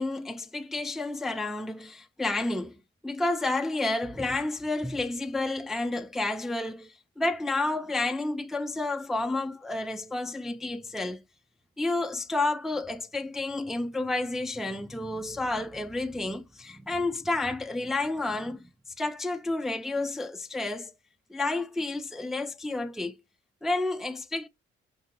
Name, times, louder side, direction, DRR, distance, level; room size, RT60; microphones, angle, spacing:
voice 1, 0.0-2.8 3.0-11.2 11.8-18.7 19.0-20.9 21.3-23.2 23.6-24.5, left 2 dB, ahead, 0.4 m, -30 dB
5.6 x 2.7 x 2.8 m
hypercardioid pair, 45°, 30 cm